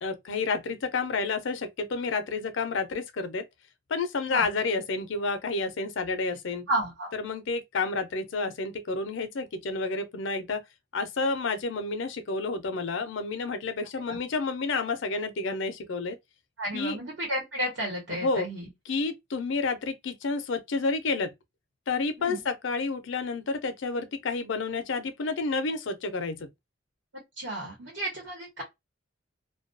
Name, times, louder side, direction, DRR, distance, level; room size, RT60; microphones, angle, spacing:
voice 1, 0.0-3.5 3.9-6.6 7.1-10.6 10.9-16.2 16.7-17.0 18.2-18.5 18.9-21.3 21.9-26.5, left 3 dB, 75° left, 0.5 m, -30 dB
voice 2, 6.7-7.1 14.1-14.2 16.6-18.7 22.2-22.4 27.4-28.6, right 1 dB, 75° right, 1.0 m, -32 dB
2.2 x 2.2 x 2.5 m
head